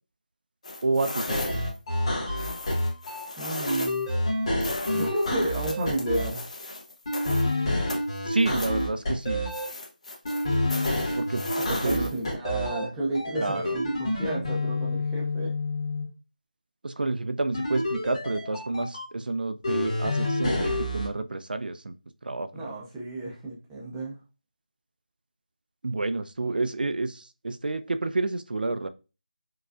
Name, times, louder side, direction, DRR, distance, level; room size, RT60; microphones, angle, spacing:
sound 1, 0.6-1.8 2.4-4.1 4.6-7.5 7.9-8.8 9.5-12.3, left 2 dB, 50° left, 0.8 m, -37 dB
voice 1, 0.8-1.4 8.3-9.5 11.2-12.1 13.4-13.8 16.8-21.9 22.2-22.7 25.8-28.9, right 2 dB, 75° right, 11 dB, 0.4 m, -29 dB
sound 2, 1.3-3.3 3.7-6.3 7.1-9.7 10.2-12.8 13.1-16.0 17.5-19.0 19.6-21.1, left 1 dB, 30° left, 1.4 m, -28 dB
voice 2, 3.4-4.1 4.9-6.4 11.6-15.5 22.5-24.2, right 1 dB, 5° right, -4 dB, 0.4 m, -32 dB
4.7 x 2.3 x 2.4 m, 0.31 s
figure-of-eight pair, 170°, 5 cm